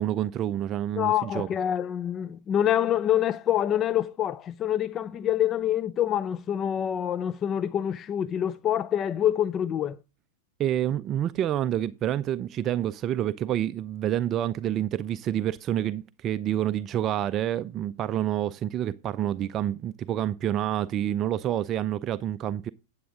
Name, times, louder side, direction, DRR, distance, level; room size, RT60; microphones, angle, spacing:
voice 1, 0.0-1.5 10.6-22.7, right 11 dB, 35° right, 0.4 m, -28 dB
voice 2, 1.0-10.0, left 10 dB, 30° left, 0.4 m, -26 dB
9.3 x 8.8 x 3.6 m
hypercardioid pair, 100°, 0 cm